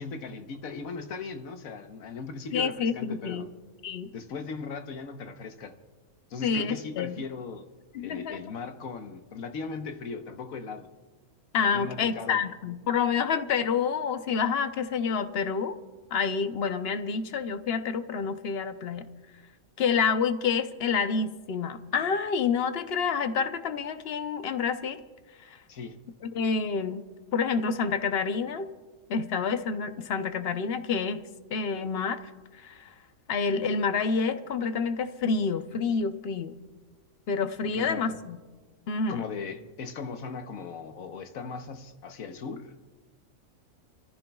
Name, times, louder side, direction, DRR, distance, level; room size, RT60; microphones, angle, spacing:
voice 1, 0.0-3.5 4.1-5.8 6.3-7.6 8.0-10.9 11.6-12.4 25.7-26.0 37.6-38.2 39.1-42.7, left 5 dB, 80° left, 1.4 m, -38 dB
voice 2, 2.5-3.5 3.8-4.1 6.4-7.1 7.9-8.4 11.5-15.8 16.1-19.0 19.8-25.0 26.2-27.0 27.3-28.7 29.1-31.2 31.5-32.2 32.6-32.9 33.3-36.6 37.3-38.4 38.9-39.2, left 5 dB, 55° left, 0.9 m, -28 dB
28.5 x 14.5 x 2.3 m
omnidirectional pair, 1.4 m